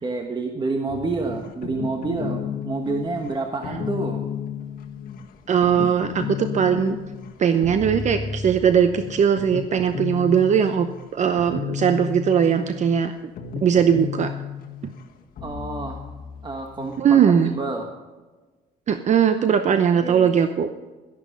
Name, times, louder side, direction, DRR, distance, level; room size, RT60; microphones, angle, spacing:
voice 1, 0.0-4.2 15.4-16.0 16.4-17.2 17.5-17.9 20.0-20.3, right 3 dB, 25° right, 4 dB, 1.3 m, -28 dB
sound 1, 0.9-17.0, left 7 dB, 60° left, 1.6 m, -33 dB
voice 2, 5.5-7.0 7.4-10.9 11.1-13.1 13.6-14.3 17.0-17.5 18.9-20.7, right 8 dB, 45° right, 9 dB, 0.8 m, -19 dB
12.5 x 11.0 x 5.4 m, 1.3 s
cardioid pair, 110°, 17 cm